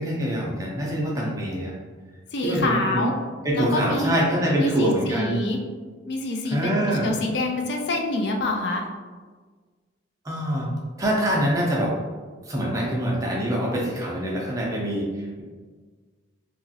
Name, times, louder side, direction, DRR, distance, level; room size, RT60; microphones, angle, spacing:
voice 1, 0.0-1.7 2.4-3.1 3.4-5.4 6.4-7.1 10.2-10.7 11.0-11.9 12.5-15.1, equal, 15° right, -3 dB, 0.4 m, -24 dB
voice 2, 2.3-3.1 3.5-4.1 4.6-5.6 6.1-8.8, left 2 dB, 60° left, 2 dB, 0.4 m, -26 dB
2.9 x 2.4 x 2.6 m, 1.4 s
head